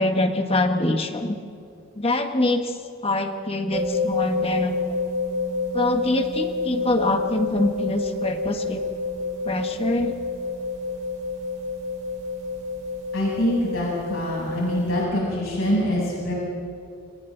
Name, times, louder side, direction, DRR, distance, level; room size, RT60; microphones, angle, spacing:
voice 1, 0.0-1.4 2.0-2.8 3.0-5.0 5.7-8.8 9.4-10.1, left 2 dB, 30° left, 5 dB, 1.5 m, -24 dB
sound 1, 3.7-15.0, left 3 dB, 35° right, 3.8 m, -29 dB
voice 2, 13.1-16.3, equal, 75° left, -5 dB, 7.7 m, -24 dB
30.0 x 26.0 x 4.0 m, 2.4 s
head